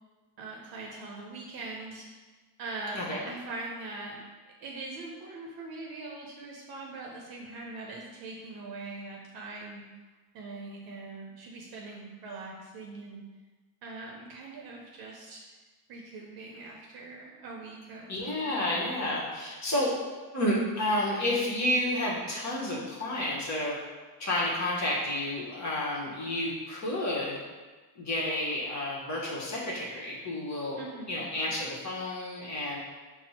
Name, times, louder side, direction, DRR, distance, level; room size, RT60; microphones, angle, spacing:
voice 1, 0.4-2.1 2.6-4.2 4.6-9.8 10.3-13.2 13.8-15.4 15.9-18.4 30.8-31.2, right 3 dB, 55° right, -1 dB, 0.7 m, -42 dB
voice 2, 18.1-19.9 20.3-23.8 24.2-27.4 28.0-32.8, left 1 dB, 40° left, -4 dB, 1.0 m, -30 dB
4.2 x 2.1 x 4.2 m, 1.3 s
cardioid pair, 95°, 43 cm